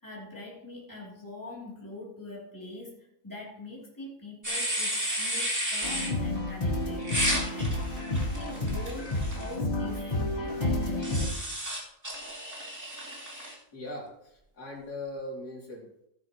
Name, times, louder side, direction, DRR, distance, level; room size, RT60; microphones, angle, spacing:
voice 1, 0.0-11.3, left 2 dB, 10° left, -5 dB, 3.2 m, -43 dB
sound 1, 4.4-6.1 7.0-9.5 11.0-13.5, equal, 10° right, 2.5 m, -32 dB
sound 2, 5.8-11.3, left 2 dB, 35° left, 3.0 m, -30 dB
voice 2, 13.7-16.1, left 1 dB, 80° left, -3 dB, 3.6 m, -40 dB
16.0 x 9.6 x 3.0 m, 0.77 s
omnidirectional pair, 1.7 m